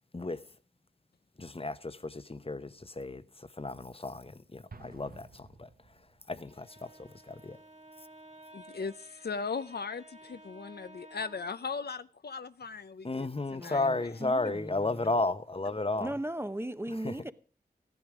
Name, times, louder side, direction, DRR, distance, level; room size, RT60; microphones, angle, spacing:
voice 1, 1.4-5.7 6.3-7.6 13.0-16.1 16.9-17.2, left 2 dB, 35° left, 0.9 m, -33 dB
Explosion, 4.7-6.4, right 4 dB, 60° right, 1.1 m, -52 dB
Bowed string instrument, 6.4-11.6, right 1 dB, 40° right, 1.8 m, -54 dB
voice 2, 8.5-14.1, left 5 dB, 75° left, 0.6 m, -38 dB
voice 3, 13.6-13.9 14.2-14.9 16.0-17.3, right 1 dB, 15° right, 0.8 m, -37 dB
14.0 x 11.0 x 4.9 m
cardioid pair, 45°, 17 cm